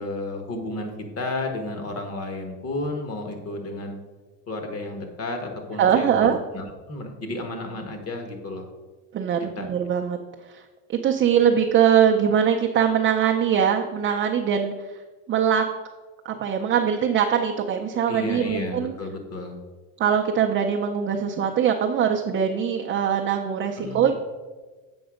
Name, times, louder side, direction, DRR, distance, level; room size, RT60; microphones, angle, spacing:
voice 1, 0.0-4.0 4.5-6.3 6.5-8.6 9.6-9.7 18.1-19.6 23.8-24.0, left 2 dB, 35° left, 5 dB, 1.4 m, -32 dB
voice 2, 5.8-6.4 9.1-10.2 10.5-10.6 10.9-15.0 15.3-15.6 16.2-18.9 20.0-24.1, right 8 dB, 30° right, 2 dB, 0.5 m, -22 dB
7.8 x 5.2 x 5.0 m, 1.3 s
cardioid pair, 135°, 42 cm